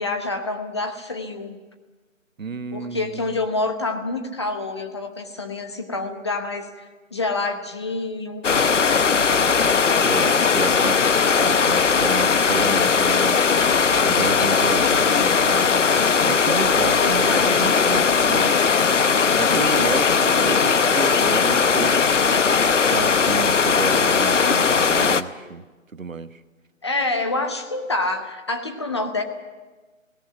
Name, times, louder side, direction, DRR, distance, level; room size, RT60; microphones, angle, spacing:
voice 1, 0.0-1.6 2.7-8.6 17.0-17.6 26.8-29.2, left 2 dB, 20° left, 6 dB, 0.9 m, -27 dB
voice 2, 2.4-3.4 10.0-11.0 11.4-13.4 14.0-15.7 16.2-18.6 19.4-22.0 22.7-25.6 25.9-26.4, right 5 dB, 75° right, 13 dB, 1.2 m, -31 dB
sound 1, 8.4-25.2, left 5 dB, 65° left, 0.9 m, -18 dB
17.5 x 17.0 x 9.3 m, 1.3 s
figure-of-eight pair, 155°, 40 cm